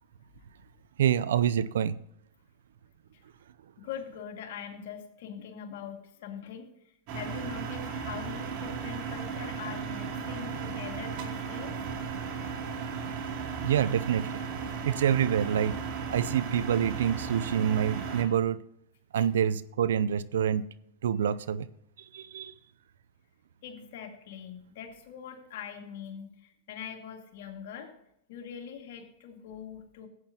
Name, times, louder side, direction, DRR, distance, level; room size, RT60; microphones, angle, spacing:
voice 1, 1.0-2.0 13.6-14.3 14.8-15.7 16.1-18.6 19.1-20.6 21.0-21.7 22.1-22.5, right 9 dB, 75° right, 16 dB, 0.5 m, -26 dB
voice 2, 3.8-6.7 7.1-11.8 19.1-19.3 23.6-27.9 28.3-30.1, left 8 dB, 65° left, 3 dB, 2.2 m, -42 dB
sound 1, 7.1-18.2, right 6 dB, 50° right, 2.6 m, -35 dB
14.5 x 8.9 x 2.9 m, 0.78 s
hypercardioid pair, 105°, 0 cm